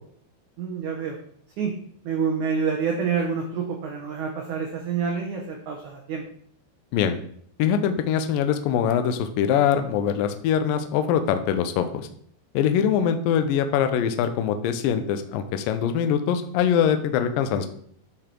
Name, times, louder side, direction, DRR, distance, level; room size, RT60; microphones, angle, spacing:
voice 1, 0.6-1.2 1.6-1.7 2.0-6.2, right 6 dB, 90° right, 1 dB, 1.7 m, -27 dB
voice 2, 7.6-12.1 12.5-17.7, left 8 dB, 85° left, 8 dB, 1.9 m, -23 dB
10.5 x 4.2 x 4.4 m, 0.63 s
omnidirectional pair, 4.9 m